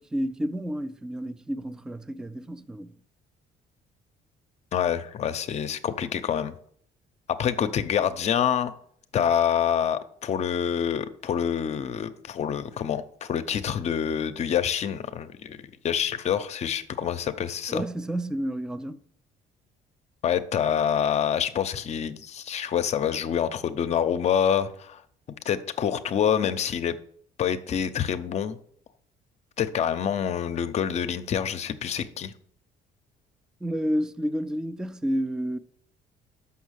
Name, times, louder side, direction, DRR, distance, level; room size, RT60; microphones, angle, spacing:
voice 1, 0.0-2.9 17.7-19.0 33.6-35.6, equal, 5° right, 0.3 m, -30 dB
voice 2, 4.7-6.5 7.3-8.7 9.1-17.8 20.2-25.0 25.5-27.0 27.4-28.6 29.6-32.3, left 8 dB, 40° left, 0.6 m, -26 dB
6.5 x 5.7 x 6.3 m
cardioid pair, 145°, 17 cm